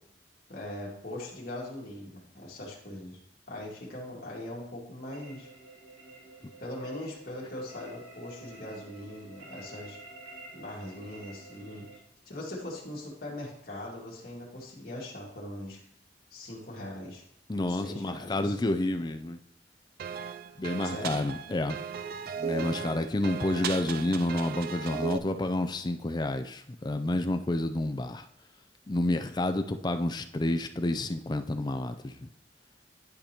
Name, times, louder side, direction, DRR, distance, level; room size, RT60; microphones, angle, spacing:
voice 1, 0.5-3.2 3.5-5.5 6.6-10.0 10.5-11.9 12.3-15.8 16.3-17.2 17.7-18.5 20.8-21.2, left 1 dB, 55° left, -3 dB, 2.1 m, -41 dB
sound 1, 5.1-12.0, right 2 dB, 90° right, 2.4 m, -50 dB
voice 2, 17.5-19.4 20.6-21.8 22.4-28.3 28.9-32.3, left 1 dB, 25° left, 8 dB, 0.4 m, -29 dB
sound 2, 20.0-25.2, right 6 dB, 55° right, 0.3 m, -36 dB
10.5 x 5.0 x 2.9 m, 0.77 s
head